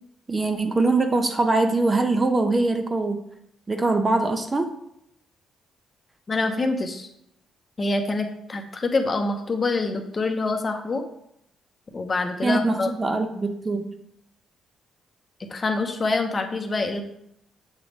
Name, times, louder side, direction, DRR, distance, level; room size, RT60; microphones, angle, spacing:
voice 1, 0.3-3.2 3.7-4.7 12.4-13.9, right 2 dB, 25° right, 6 dB, 0.7 m, -22 dB
voice 2, 6.3-7.1 7.8-11.0 11.9-12.9 15.5-17.0, left 3 dB, 35° left, 5 dB, 0.8 m, -25 dB
7.2 x 3.4 x 4.0 m, 0.76 s
cardioid pair, 90°, 0 cm